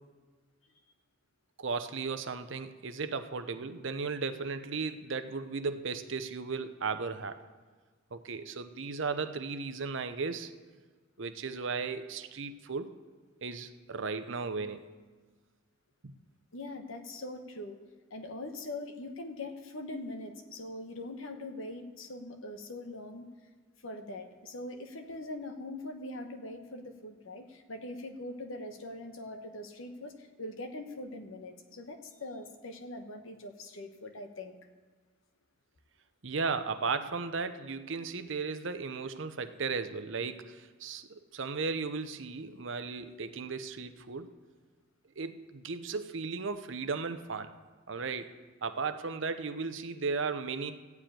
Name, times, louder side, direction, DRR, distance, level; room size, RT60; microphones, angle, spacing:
voice 1, 1.6-7.4 8.1-10.5 11.2-12.9 13.4-14.8 36.2-44.3 45.2-47.5 47.9-48.3 48.6-50.7, right 4 dB, 65° right, 10 dB, 0.7 m, -35 dB
voice 2, 16.5-17.8 18.1-23.2 23.8-34.6, left 2 dB, 75° left, 5 dB, 1.2 m, -42 dB
14.5 x 4.9 x 9.0 m, 1.5 s
head